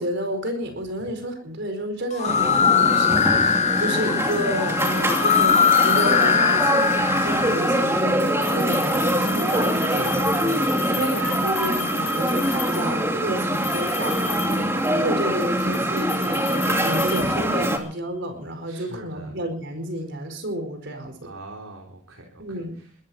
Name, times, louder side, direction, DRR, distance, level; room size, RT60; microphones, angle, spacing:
voice 1, 0.0-10.2 10.8-14.2 14.5-14.6 14.9-21.3 22.4-22.7, right 1 dB, 55° right, 6 dB, 4.8 m, -30 dB
sound 1, 2.1-7.9, left 7 dB, 30° left, 0.7 m, -21 dB
sound 2, 2.3-17.8, right 1 dB, 10° right, 2.6 m, -24 dB
sound 3, 4.8-6.5 8.3-13.0 13.5-15.1 15.4-17.9, left 10 dB, 90° left, 6.7 m, -36 dB
voice 2, 9.9-10.3 10.9-11.1 14.2-14.8 18.6-19.4 21.2-22.6, right 1 dB, 80° right, 0 dB, 3.7 m, -40 dB
23.0 x 13.5 x 4.3 m, 0.43 s
head